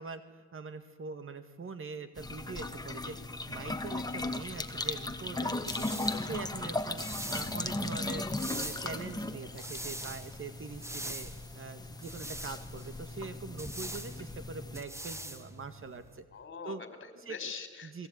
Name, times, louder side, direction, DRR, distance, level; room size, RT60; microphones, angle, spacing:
voice 1, 0.0-5.9 6.2-7.0 7.3-16.2 16.6-16.8 17.2-17.4 17.8-18.1, right 4 dB, 45° right, 11 dB, 1.9 m, -43 dB
sound 1, 2.2-14.8, left 2 dB, 15° left, 1.9 m, -37 dB
sound 2, 5.2-16.2, right 1 dB, 10° right, 1.7 m, -44 dB
voice 2, 16.3-18.1, left 5 dB, 40° left, 8 dB, 4.3 m, -43 dB
27.5 x 20.5 x 9.5 m, 1.4 s
cardioid pair, 90°, 30 cm